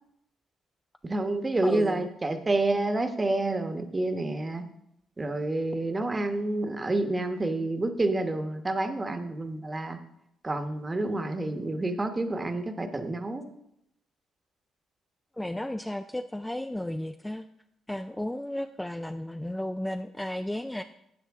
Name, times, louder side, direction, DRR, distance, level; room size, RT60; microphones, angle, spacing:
voice 1, 1.0-4.6 5.2-10.0 10.4-13.5, right 2 dB, 25° right, 7 dB, 1.1 m, -28 dB
voice 2, 1.6-2.0 15.4-17.4 17.9-20.8, left 1 dB, 10° left, 8 dB, 0.4 m, -33 dB
13.5 x 8.2 x 3.6 m, 0.79 s
cardioid pair, 90°, 0 cm